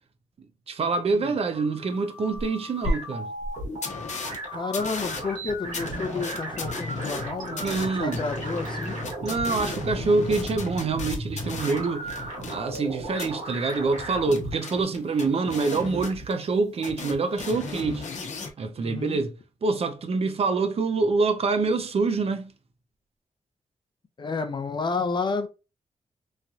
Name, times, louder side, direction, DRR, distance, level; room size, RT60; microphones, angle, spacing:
voice 1, 0.7-3.3 7.5-8.2 9.2-12.1 12.5-18.1 18.6-22.5, right 3 dB, 55° right, 0.5 m, -26 dB
sound 1, 1.3-14.6, right 1 dB, 85° right, 1.5 m, -36 dB
sound 2, 2.3-2.4 2.8-2.9 3.4-3.5 3.8-4.4 4.7-12.9 13.2-13.3 14.0-16.6 16.8-18.5, left 3 dB, 75° left, 0.8 m, -35 dB
voice 2, 4.5-9.0 18.8-19.2 24.2-25.5, left 4 dB, 40° left, 0.5 m, -31 dB
3.2 x 2.7 x 2.3 m
wide cardioid pair, 120°, 12 cm